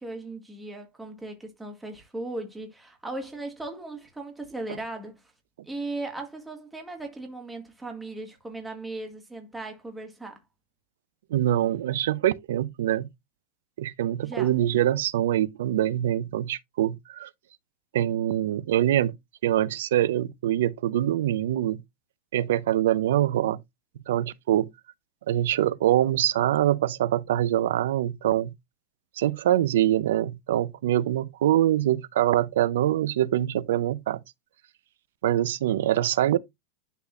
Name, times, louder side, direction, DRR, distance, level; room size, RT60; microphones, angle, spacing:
voice 1, 0.0-5.2 5.6-10.4 14.2-14.5, right 2 dB, 5° right, 1.9 m, -37 dB
voice 2, 11.3-13.1 13.8-17.3 17.9-19.2 19.4-21.8 22.3-23.6 24.1-24.7 25.3-28.5 29.2-34.2 35.2-36.4, right 12 dB, 85° right, 0.6 m, -24 dB
11.0 x 4.1 x 2.5 m
supercardioid pair, 150°, 0 cm